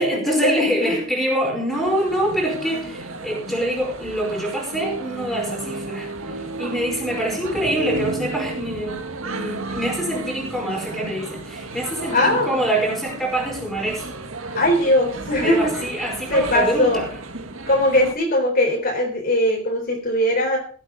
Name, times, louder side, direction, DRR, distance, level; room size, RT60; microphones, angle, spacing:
voice 1, 0.0-14.0 15.4-17.1, right 1 dB, ahead, -2 dB, 5.0 m, -25 dB
sound 1, 1.7-18.1, right 3 dB, 70° right, 1.7 m, -33 dB
voice 2, 12.1-12.5 14.6-15.7 16.3-17.0 17.7-20.6, left 1 dB, 45° left, 1 dB, 3.8 m, -20 dB
16.5 x 8.5 x 4.9 m, 0.43 s
head